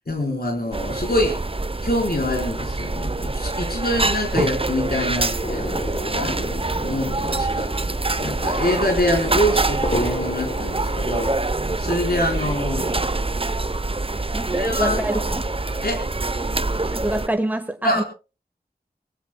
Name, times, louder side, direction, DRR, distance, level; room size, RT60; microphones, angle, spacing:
voice 1, 0.1-1.4 1.8-5.6 6.1-7.7 8.2-11.3 11.8-13.2 14.5-15.0 15.8-16.0 17.8-18.0, left 1 dB, 65° left, 1 dB, 4.3 m, -25 dB
sound 1, 0.7-17.3, right 2 dB, 35° right, 0.7 m, -25 dB
sound 2, 5.4-11.2, left 1 dB, 45° left, 6.1 m, -33 dB
voice 2, 14.3-15.4 16.8-18.0, right 1 dB, 10° right, 7 dB, 1.2 m, -26 dB
25.5 x 18.5 x 2.2 m, 0.32 s
wide cardioid pair, 40°, 17 cm